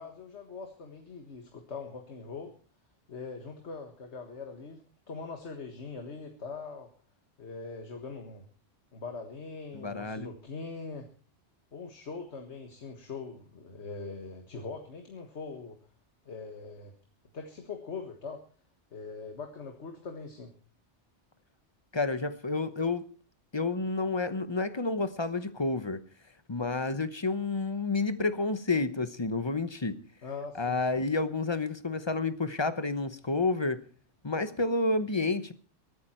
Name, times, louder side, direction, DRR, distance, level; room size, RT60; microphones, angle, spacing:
voice 1, 0.0-2.5 3.1-4.8 5.1-6.9 7.4-8.5 8.9-11.1 11.7-15.8 16.3-16.9 17.3-18.4 18.9-20.5 30.2-30.8, left 4 dB, 70° left, 1.8 m, -42 dB
voice 2, 9.7-10.3 21.9-23.1 23.5-26.0 26.5-30.0 30.5-33.8 34.2-35.5, left 3 dB, 25° left, 0.8 m, -30 dB
23.0 x 9.4 x 4.4 m
omnidirectional pair, 1.2 m